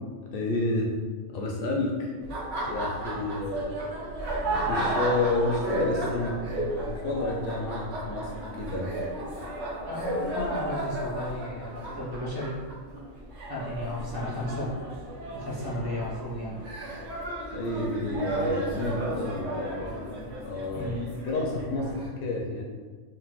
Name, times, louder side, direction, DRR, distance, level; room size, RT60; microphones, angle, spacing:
voice 1, 0.2-1.0 1.3-2.2 2.6-4.1 4.7-9.0 17.5-20.0 20.4-21.0 21.2-22.6, left 2 dB, 60° left, -1 dB, 0.6 m, -30 dB
Laughter, 2.2-22.1, right 1 dB, 65° right, 1.0 m, -33 dB
voice 2, 9.9-12.6 13.5-14.7 15.3-16.5 20.7-21.1, left 1 dB, 35° right, -7 dB, 0.4 m, -33 dB
3.8 x 2.1 x 2.3 m, 1.5 s
omnidirectional pair, 1.3 m